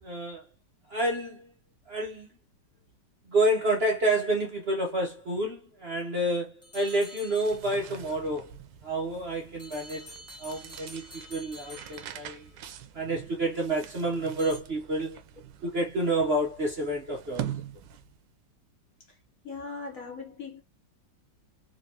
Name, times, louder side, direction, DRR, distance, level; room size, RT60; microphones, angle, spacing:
voice 1, 0.0-0.5 0.9-1.5 1.9-2.3 3.2-8.5 8.8-12.5 12.9-15.2 15.6-17.5, right 1 dB, 45° right, 0.9 m, -29 dB
sound 1, 6.6-8.0 9.6-12.6 14.4-14.6, left 1 dB, 10° left, 0.9 m, -48 dB
sound 2, 7.1-18.3, right 11 dB, 85° right, 1.3 m, -44 dB
voice 2, 19.4-20.6, left 4 dB, 55° left, 1.2 m, -39 dB
4.5 x 2.4 x 2.7 m
omnidirectional pair, 2.0 m